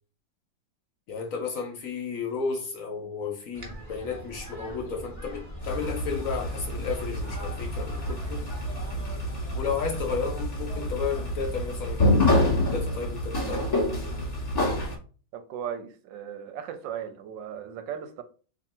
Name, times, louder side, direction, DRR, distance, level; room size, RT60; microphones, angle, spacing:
voice 1, 1.1-8.6 9.5-13.7, left 5 dB, 65° left, 0.8 m, -33 dB
sound 1, 3.5-10.0, equal, 15° right, 0.5 m, -43 dB
sound 2, 5.6-15.0, left 1 dB, 30° left, 0.8 m, -27 dB
voice 2, 15.3-18.2, right 9 dB, 75° right, 1.2 m, -37 dB
2.9 x 2.6 x 4.2 m
omnidirectional pair, 2.1 m